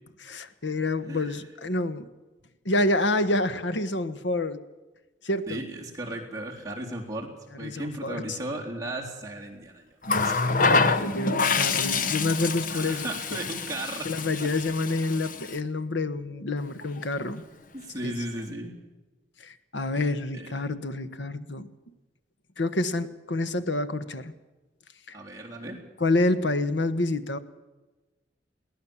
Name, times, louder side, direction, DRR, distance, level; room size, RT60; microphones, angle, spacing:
voice 1, 0.2-2.1 2.6-4.6 5.2-5.6 7.6-8.4 10.7-13.4 14.0-17.4 18.0-18.1 19.4-21.7 22.6-24.3 25.1-25.2 26.0-27.4, left 2 dB, 80° left, 12 dB, 1.4 m, -28 dB
voice 2, 5.5-7.3 7.6-9.8 10.2-10.3 10.6-11.0 12.7-14.1 14.4-14.5 17.7-18.7 20.3-20.5 25.1-25.8, right 1 dB, 20° right, -2 dB, 3.8 m, -35 dB
Water tap faucet, 10.0-15.6 16.8-17.0, left 4 dB, 45° left, 1.1 m, -26 dB
22.5 x 18.0 x 7.2 m, 1.1 s
head